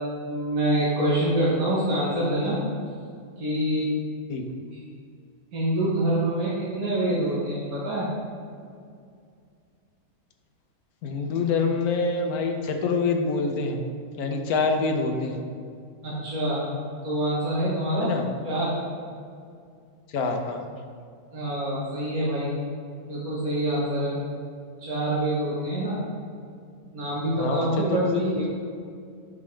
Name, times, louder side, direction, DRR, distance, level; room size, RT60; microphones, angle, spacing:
voice 1, 0.0-2.6 3.4-3.9 5.5-8.1 16.0-16.6 17.0-18.1 18.5-18.7 21.3-22.5 23.1-24.2 24.8-26.0 26.9-28.5, right 1 dB, 80° right, -8 dB, 1.8 m, -26 dB
voice 2, 11.0-13.8 14.2-15.4 18.0-18.2 20.1-20.7 27.3-28.5, left 4 dB, 90° left, 4 dB, 1.2 m, -26 dB
9.4 x 6.1 x 3.2 m, 2.3 s
omnidirectional pair, 1.5 m